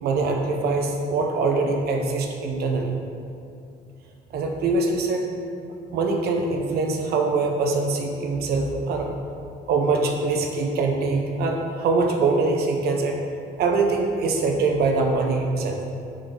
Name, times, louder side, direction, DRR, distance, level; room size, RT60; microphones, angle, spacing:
voice 1, 0.0-2.9 4.3-5.2 5.9-9.1 9.7-13.2 13.6-15.8, right 3 dB, 70° right, 3 dB, 1.2 m, -23 dB
6.9 x 6.5 x 5.2 m, 2.5 s
cardioid pair, 110°, 17 cm